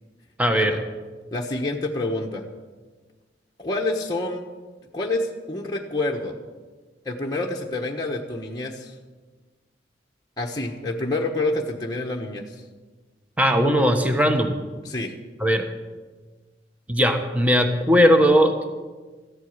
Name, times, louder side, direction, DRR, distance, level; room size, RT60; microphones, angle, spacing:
voice 1, 0.4-0.7 13.4-14.6 15.4-15.6 16.9-18.6, equal, 10° right, 5 dB, 1.2 m, -18 dB
voice 2, 1.3-2.4 3.6-4.4 4.9-6.3 7.0-8.9 10.4-12.6 14.8-15.1, left 2 dB, 25° left, -1 dB, 1.1 m, -27 dB
14.5 x 8.3 x 9.6 m, 1.3 s
head